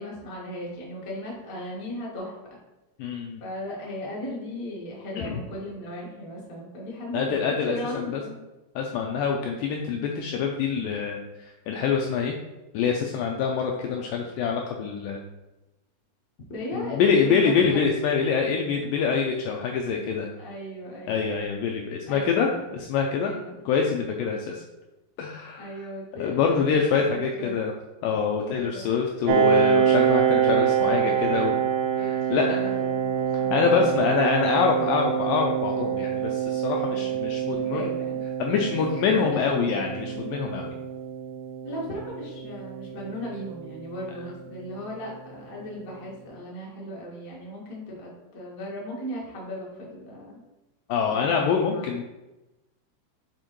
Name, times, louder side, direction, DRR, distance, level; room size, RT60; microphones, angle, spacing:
voice 1, 0.0-2.6 3.4-8.4 16.5-17.8 20.4-21.3 22.1-22.6 23.2-23.6 25.6-27.5 28.5-29.0 31.9-34.1 36.8-38.2 39.1-39.4 40.0-40.3 41.6-50.4 51.1-52.0, left 1 dB, 65° left, -4 dB, 0.8 m, -37 dB
voice 2, 3.0-3.4 5.2-5.4 7.1-8.2 8.8-12.3 12.7-15.2 16.7-20.3 21.1-23.3 23.7-24.6 25.2-25.7 26.2-27.7 28.0-31.6 32.0-32.7 33.3-37.9 38.4-40.7 50.9-52.0, left 6 dB, 85° left, 1 dB, 2.0 m, -25 dB
Piano, 29.3-44.6, right 9 dB, 85° right, 2.6 m, -26 dB
7.7 x 4.4 x 3.0 m, 1.0 s
omnidirectional pair, 4.4 m